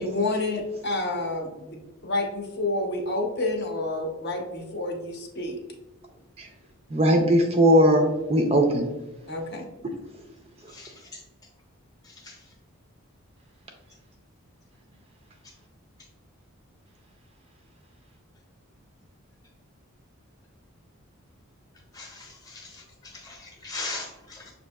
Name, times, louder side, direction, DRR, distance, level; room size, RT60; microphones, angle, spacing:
voice 1, 0.0-1.8 2.0-5.6 9.3-9.6, left 2 dB, 50° left, 1 dB, 0.7 m, -29 dB
voice 2, 6.9-8.9, equal, 25° right, 2 dB, 0.3 m, -19 dB
voice 3, 10.7-11.0 12.0-12.4 21.9-24.5, left 3 dB, 15° left, -1 dB, 0.8 m, -39 dB
6.2 x 2.6 x 2.2 m, 1.1 s
head